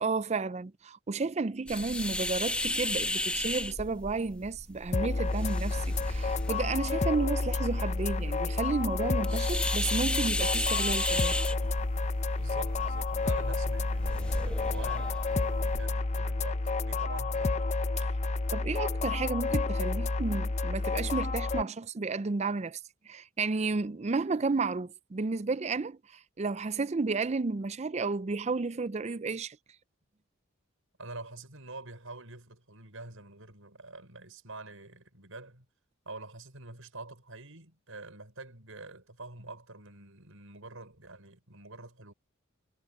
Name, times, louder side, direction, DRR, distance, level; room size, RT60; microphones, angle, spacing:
voice 1, 0.0-11.3 18.5-22.8 23.1-29.6, right 4 dB, 30° right, 0.4 m, -32 dB
sound 1, 1.7-15.8, left 1 dB, 5° left, 1.3 m, -35 dB
sound 2, 4.9-21.6, left 3 dB, 30° left, 0.6 m, -30 dB
voice 2, 12.4-17.6 31.0-35.7 36.1-42.1, right 2 dB, 70° right, 5.7 m, -46 dB
head